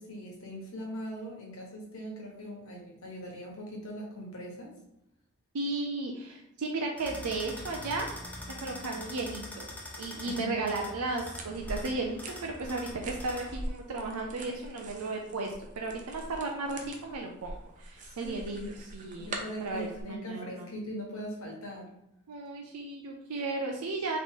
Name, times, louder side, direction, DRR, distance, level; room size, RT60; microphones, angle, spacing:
voice 1, 0.0-4.8 10.2-10.5 18.0-18.7 19.2-21.9, equal, 65° left, -1 dB, 1.3 m, -41 dB
voice 2, 5.5-8.1 8.6-9.7 10.0-18.6 18.9-19.3 19.6-20.7 22.3-24.2, right 3 dB, 85° right, 1 dB, 0.5 m, -35 dB
sound 1, 7.0-13.6, left 1 dB, 5° left, 0.6 m, -44 dB
sound 2, 11.4-20.0, right 1 dB, 35° right, 0.6 m, -43 dB
4.0 x 3.1 x 3.7 m, 0.84 s
head